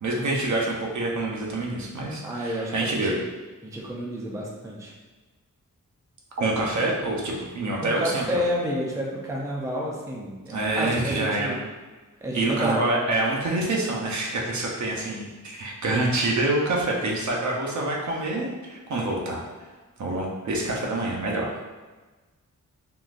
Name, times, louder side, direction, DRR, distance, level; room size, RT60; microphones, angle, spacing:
voice 1, 0.0-3.1 6.4-8.4 10.5-11.7 12.3-19.4 20.0-21.5, right 2 dB, 60° right, -2 dB, 0.7 m, -26 dB
voice 2, 2.2-3.2 3.6-4.9 7.8-11.6 12.2-12.8, equal, 10° right, -3 dB, 0.4 m, -30 dB
3.7 x 2.4 x 2.4 m, 1.2 s
wide cardioid pair, 130°, 32 cm